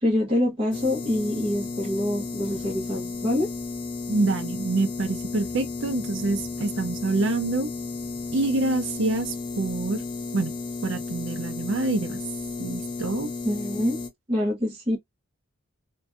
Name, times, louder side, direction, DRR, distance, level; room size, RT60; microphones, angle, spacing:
voice 1, 0.0-3.5 13.4-14.0 14.3-15.0, left 1 dB, 25° right, 0.8 m, -25 dB
sound 1, 0.7-14.1, left 3 dB, 20° left, 0.3 m, -33 dB
voice 2, 4.1-7.7 8.3-10.0 10.3-10.5 10.8-12.2 12.6-13.3, right 2 dB, 55° right, 0.5 m, -26 dB
2.5 x 2.2 x 2.4 m
head